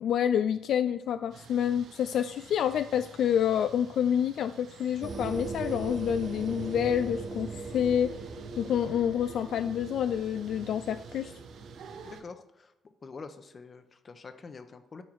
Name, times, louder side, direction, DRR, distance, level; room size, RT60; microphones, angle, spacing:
voice 1, 0.0-8.1 8.6-11.3, left 9 dB, 70° left, 11 dB, 0.3 m, -28 dB
sound 1, 1.3-12.2, right 6 dB, 75° right, 1.1 m, -51 dB
sound 2, 5.0-12.2, right 3 dB, 45° right, 2.3 m, -40 dB
voice 2, 12.0-12.7 13.0-15.0, left 4 dB, 40° left, 9 dB, 1.0 m, -46 dB
12.5 x 4.7 x 4.7 m, 0.89 s
cardioid pair, 90°, 0 cm